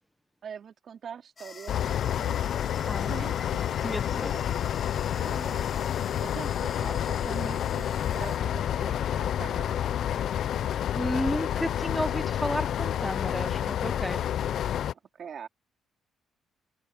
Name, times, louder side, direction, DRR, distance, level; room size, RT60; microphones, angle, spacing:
voice 1, 0.4-2.5 3.0-3.7 4.0-4.7 5.2-5.9 6.2-10.0 14.9-15.5, right 7 dB, 55° right, 3.0 m, -43 dB
sound 1, 1.4-8.4, left 5 dB, 35° left, 0.9 m, -46 dB
sound 2, 1.7-14.9, left 10 dB, 70° left, 0.5 m, -29 dB
voice 2, 3.8-4.3 10.9-14.2, equal, ahead, 1.0 m, -32 dB
cardioid pair, 90°, 0 cm